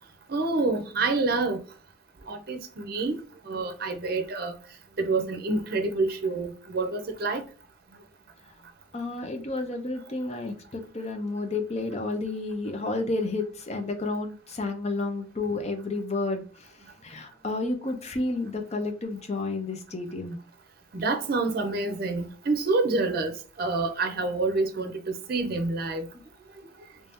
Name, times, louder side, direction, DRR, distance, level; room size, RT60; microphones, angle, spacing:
voice 1, 0.3-1.6 2.3-4.5 5.0-7.4 20.9-26.1 26.6-26.7, right 3 dB, 50° right, 0.6 m, -27 dB
voice 2, 8.9-20.4 26.1-26.2, left 2 dB, 35° left, 0.6 m, -31 dB
3.1 x 2.7 x 3.5 m
head